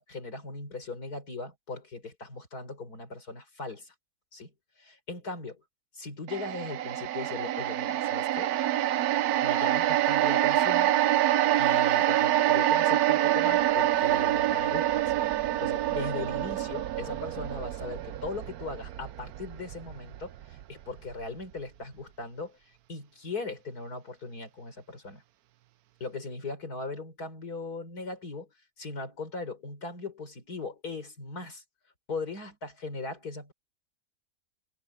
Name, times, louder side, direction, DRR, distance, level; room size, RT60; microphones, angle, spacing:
voice 1, 0.0-3.9 4.3-4.5 4.8-5.6 5.9-8.5 9.4-10.9 11.6-15.1 15.6-22.6 22.9-25.2 26.0-28.5 28.8-31.6 32.1-33.5, left 3 dB, 80° left, 5.0 m, -39 dB
sound 1, 6.3-20.6 21.0-21.1, right 13 dB, 80° right, 1.2 m, -26 dB
open air
omnidirectional pair, 1.6 m